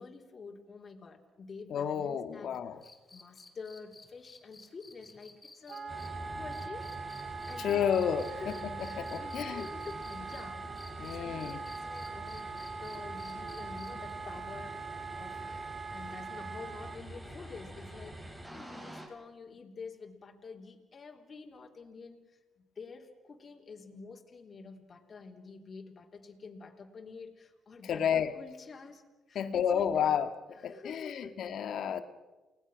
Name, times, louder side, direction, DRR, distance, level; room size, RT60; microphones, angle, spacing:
voice 1, 0.0-2.5 3.1-6.9 7.2-8.0 8.3-10.7 11.0-14.8 15.1-15.6 15.9-29.0 29.3-30.2 30.6-31.4, left 4 dB, 40° left, 1 dB, 3.4 m, -48 dB
voice 2, 1.7-2.8 7.6-9.7 11.0-11.6 27.8-28.3 29.4-30.3 30.6-32.0, left 8 dB, 70° left, 9 dB, 1.7 m, -31 dB
sound 1, 2.8-10.4 10.8-14.1 15.7-15.8, left 3 dB, 20° left, 3.4 m, -53 dB
Wind instrument woodwind instrument, 5.7-17.0, right 4 dB, 45° right, 1.5 m, -42 dB
sound 2, 5.9-19.1, right 1 dB, 15° right, 7.0 m, -46 dB
30.0 x 19.5 x 6.3 m, 1.1 s
cardioid pair, 90°, 0 cm